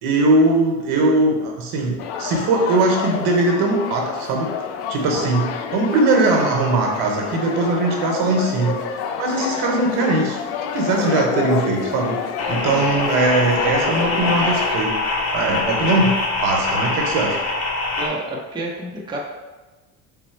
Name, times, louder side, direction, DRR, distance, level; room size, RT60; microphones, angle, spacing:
voice 1, 0.0-4.5 4.9-10.4 10.7-12.2 12.5-15.0 15.3-16.1 16.4-17.4, right 2 dB, 75° right, 0 dB, 1.0 m, -20 dB
sound 1, 2.0-14.8, left 7 dB, 80° left, 0.5 m, -28 dB
sound 2, 12.4-18.1, left 2 dB, 40° left, 0.8 m, -24 dB
voice 2, 12.7-13.0 18.0-19.2, right 2 dB, 10° right, -4 dB, 0.8 m, -30 dB
4.0 x 2.2 x 4.3 m, 1.2 s
supercardioid pair, 95°, 40 cm